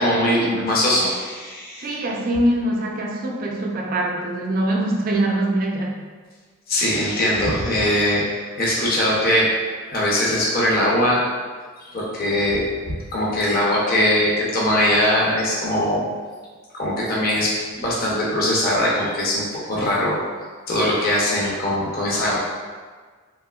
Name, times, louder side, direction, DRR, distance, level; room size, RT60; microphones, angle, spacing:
voice 1, 0.0-2.0 6.7-9.5 9.9-11.2 11.8-16.0 16.7-20.2 20.7-22.4, left 1 dB, 45° left, -5 dB, 0.6 m, -21 dB
voice 2, 1.8-6.0, right 1 dB, 45° right, -1 dB, 0.4 m, -23 dB
3.4 x 2.7 x 2.2 m, 1.5 s
head